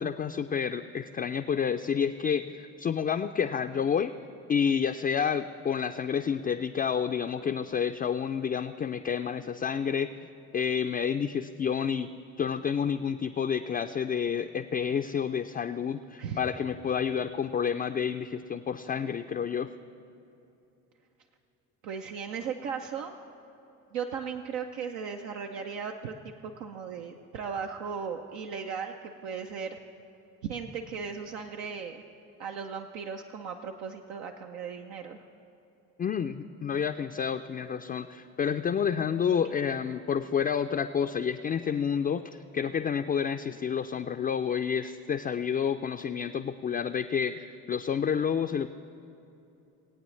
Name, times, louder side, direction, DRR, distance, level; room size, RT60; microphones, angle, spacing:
voice 1, 0.0-4.1 4.5-10.1 10.5-12.1 12.4-19.7 36.0-48.7, left 7 dB, 25° left, 6 dB, 0.3 m, -29 dB
voice 2, 16.2-16.5 21.8-23.1 23.9-29.8 30.4-32.0 32.4-35.2, right 6 dB, 80° right, 3 dB, 0.6 m, -37 dB
19.5 x 8.7 x 3.2 m, 2.9 s
hypercardioid pair, 50°, 39 cm